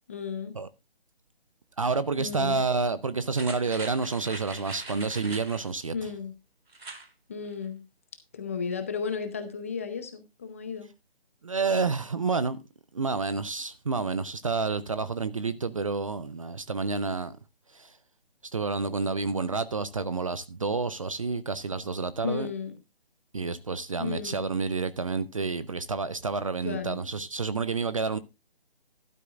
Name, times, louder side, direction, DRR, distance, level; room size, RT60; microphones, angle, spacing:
voice 1, 0.1-0.5 2.2-2.6 5.9-6.3 7.3-7.8 8.3-10.9 22.2-22.8 24.0-24.5 26.6-27.0, left 6 dB, 15° left, 0.7 m, -34 dB
voice 2, 1.8-5.9 11.4-12.6 12.9-17.4 17.7-17.9 18.5-22.5 23.3-28.2, right 4 dB, 35° right, 0.6 m, -29 dB
sound 1, 3.3-5.7 6.7-7.1 7.5-7.6, right 3 dB, 80° right, 3.1 m, -42 dB
13.5 x 12.0 x 2.4 m
figure-of-eight pair, 160°, 30 cm